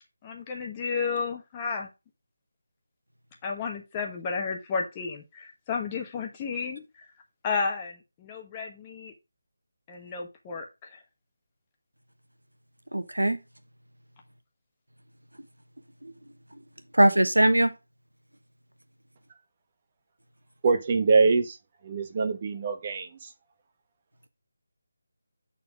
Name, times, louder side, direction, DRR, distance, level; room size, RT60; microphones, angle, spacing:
voice 1, 0.2-1.9 3.4-6.8 7.4-9.1 9.9-11.0, left 5 dB, 20° left, 1.2 m, -32 dB
voice 2, 12.9-13.4 16.0-16.1 16.9-17.7, right 1 dB, 80° right, 1.1 m, -21 dB
voice 3, 20.6-21.6 21.8-23.3, right 4 dB, 30° right, 1.1 m, -24 dB
8.3 x 4.2 x 5.0 m
figure-of-eight pair, 155°, 0 cm